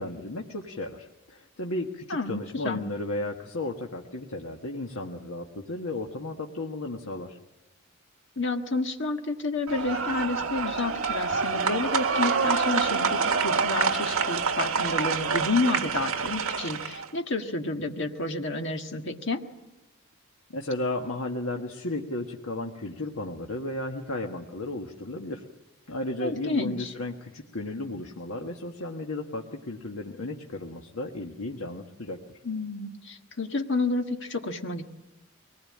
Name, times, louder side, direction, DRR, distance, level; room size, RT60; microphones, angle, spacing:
voice 1, 0.0-7.4 20.5-25.4 25.9-32.2, left 2 dB, 75° left, 1 dB, 1.6 m, -34 dB
voice 2, 2.1-2.8 8.4-19.4 26.2-26.9 32.4-34.8, left 3 dB, 55° left, 4 dB, 1.7 m, -30 dB
sound 1, 9.7-17.1, right 5 dB, 70° right, 1.6 m, -27 dB
23.5 x 19.5 x 8.7 m, 1.0 s
head